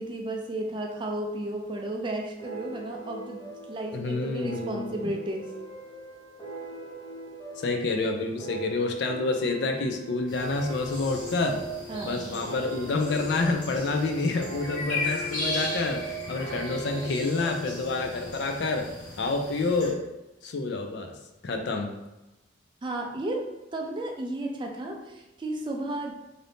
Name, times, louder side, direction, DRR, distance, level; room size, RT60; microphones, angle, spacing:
voice 1, 0.0-5.5 11.9-12.4 22.8-23.5 23.7-26.1, right 1 dB, 25° right, 1 dB, 0.3 m, -33 dB
sound 1, 2.4-19.5, right 2 dB, 20° left, 0.6 m, -40 dB
voice 2, 3.9-5.0 7.6-11.6 12.0-18.9 19.2-20.0 20.4-21.2 21.4-21.9, left 3 dB, 60° left, 3 dB, 0.4 m, -28 dB
sound 2, 10.3-19.9, left 2 dB, 45° left, 1.4 m, -37 dB
2.6 x 2.6 x 3.3 m, 1.0 s
head